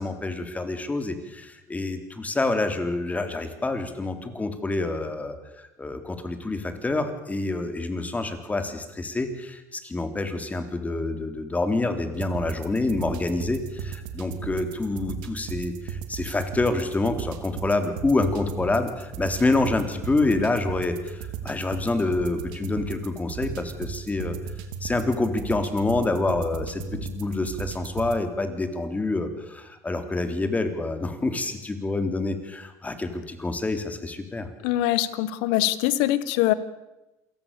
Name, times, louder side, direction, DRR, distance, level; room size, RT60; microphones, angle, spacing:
voice 1, 0.0-24.4 24.8-34.5, left 2 dB, 15° left, 8 dB, 3.7 m, -27 dB
sound 1, 12.1-28.2, right 7 dB, 70° right, 2.7 m, -36 dB
voice 2, 34.6-36.5, left 14 dB, 70° left, 16 dB, 1.6 m, -23 dB
27.5 x 18.5 x 7.0 m, 0.99 s
hypercardioid pair, 80°, 9 cm